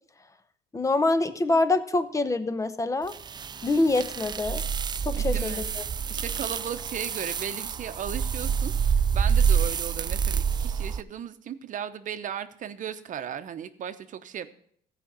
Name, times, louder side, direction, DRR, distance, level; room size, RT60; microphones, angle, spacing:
voice 1, 0.7-3.1 3.6-4.6 5.0-5.8, left 2 dB, 20° left, 12 dB, 0.8 m, -25 dB
sound 1, 3.1-11.0, right 7 dB, 25° right, 0.4 m, -27 dB
voice 2, 5.1-5.7 6.1-14.5, right 9 dB, 50° right, 11 dB, 0.9 m, -36 dB
14.5 x 5.1 x 7.3 m, 0.62 s
cardioid pair, 110°, 17 cm